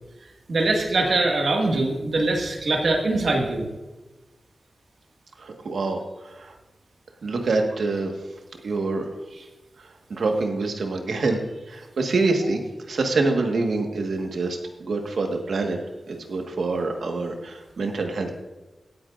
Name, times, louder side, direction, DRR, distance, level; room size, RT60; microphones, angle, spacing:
voice 1, 0.5-3.7, right 2 dB, 75° right, 1 dB, 1.9 m, -22 dB
voice 2, 5.4-6.0 6.2-6.5 7.2-8.1 8.6-9.1 10.1-11.4 11.7-12.6 12.9-15.8 16.1-18.4, right 3 dB, 90° right, 3 dB, 1.5 m, -25 dB
17.0 x 9.0 x 2.5 m, 1.1 s
wide cardioid pair, 125°, 0 cm